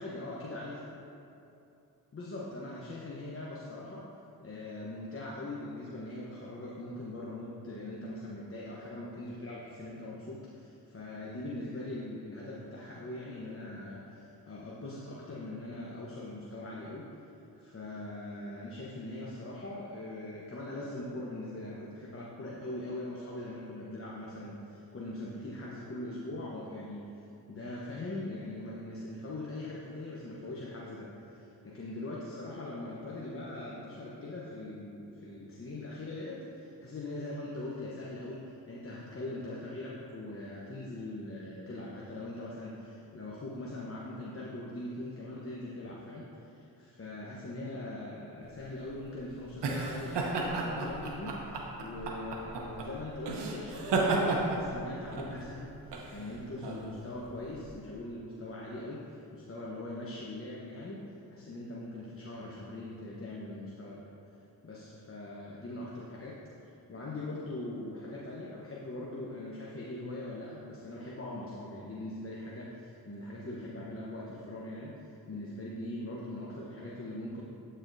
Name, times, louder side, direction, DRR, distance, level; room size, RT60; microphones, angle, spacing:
voice 1, 0.0-0.8 2.1-4.1 4.4-17.1 17.6-61.0 61.3-64.1 64.6-77.4, left 1 dB, 30° left, -5 dB, 1.0 m, -41 dB
sound 1, 48.5-57.7, right 3 dB, 75° right, 0.9 m, -33 dB
12.0 x 4.3 x 2.7 m, 2.8 s
supercardioid pair, 50°, 42 cm